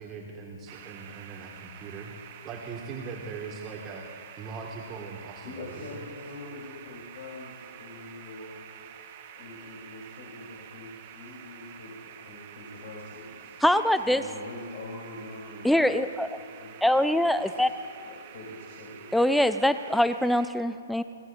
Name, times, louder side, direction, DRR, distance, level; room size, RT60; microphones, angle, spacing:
voice 1, 0.0-2.2 2.4-4.1 4.4-6.0, right 4 dB, 25° right, 0 dB, 1.9 m, -40 dB
sound 1, 0.7-20.5, right 9 dB, 40° right, 1.3 m, -48 dB
voice 2, 5.4-8.6 9.3-13.6 14.0-19.2, left 2 dB, 50° left, -3 dB, 3.7 m, -44 dB
voice 3, 13.6-14.2 15.6-16.3 16.8-17.7 19.1-21.0, left 1 dB, ahead, 12 dB, 0.5 m, -23 dB
24.0 x 19.0 x 2.6 m, 2.5 s
figure-of-eight pair, 120°, 0 cm